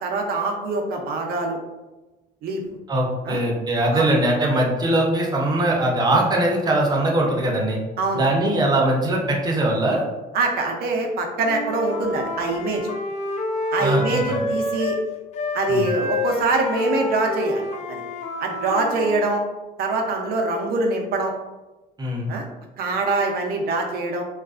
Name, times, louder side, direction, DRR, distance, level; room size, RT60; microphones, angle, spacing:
voice 1, 0.0-1.6 2.4-2.6 3.2-3.4 3.9-4.1 8.0-8.2 10.3-12.9 13.7-15.0 15.5-17.6 17.9-18.0 18.4-19.4 19.8-21.3 22.3-22.4 22.8-24.2, right 2 dB, 65° right, 2 dB, 0.5 m, -24 dB
voice 2, 2.9-7.8 8.1-10.0 13.8-14.4 15.7-15.9 22.0-22.3, right 1 dB, 25° right, -1 dB, 0.6 m, -21 dB
Wind instrument woodwind instrument, 11.4-15.1 15.3-19.2, left 2 dB, 45° left, 0.4 m, -28 dB
2.4 x 2.2 x 2.4 m, 1.1 s
cardioid pair, 110°, 17 cm